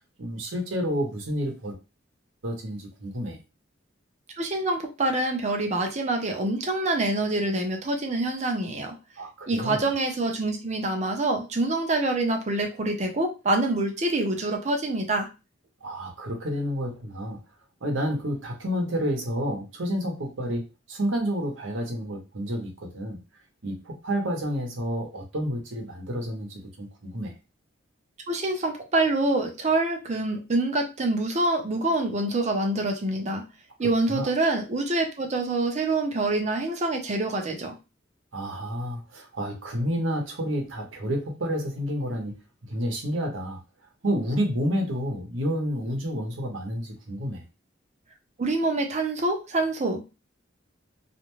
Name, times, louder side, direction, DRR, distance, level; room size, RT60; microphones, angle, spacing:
voice 1, 0.2-1.7 2.4-3.4 9.2-9.8 15.8-17.4 17.8-23.2 23.6-27.3 33.8-34.3 38.3-42.3 42.7-43.6 44.0-47.4, equal, 85° right, 3 dB, 0.8 m, -30 dB
voice 2, 4.4-8.9 9.5-15.3 28.3-33.4 33.8-37.7 48.4-50.0, right 2 dB, 35° right, 4 dB, 0.6 m, -26 dB
2.5 x 2.2 x 3.0 m, 0.28 s
head